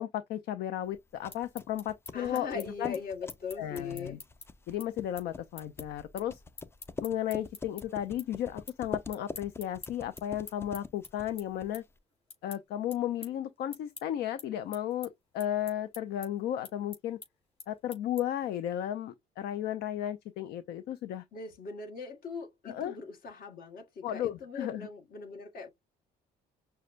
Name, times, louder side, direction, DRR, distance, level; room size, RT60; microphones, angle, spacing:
voice 1, 0.0-3.0 3.6-4.2 4.7-6.4 7.0-11.8 12.4-17.2 17.7-21.2 22.7-23.0 24.0-24.9, left 11 dB, 75° left, 0.5 m, -34 dB
sound 1, 0.9-12.0, left 3 dB, 15° left, 0.4 m, -45 dB
sound 2, 1.1-7.8 8.2-8.8 9.1-18.5, left 4 dB, 35° left, 3.4 m, -48 dB
voice 2, 2.1-4.2 21.3-25.7, left 4 dB, 60° left, 1.5 m, -40 dB
6.3 x 2.2 x 2.4 m
cardioid pair, 110°, 17 cm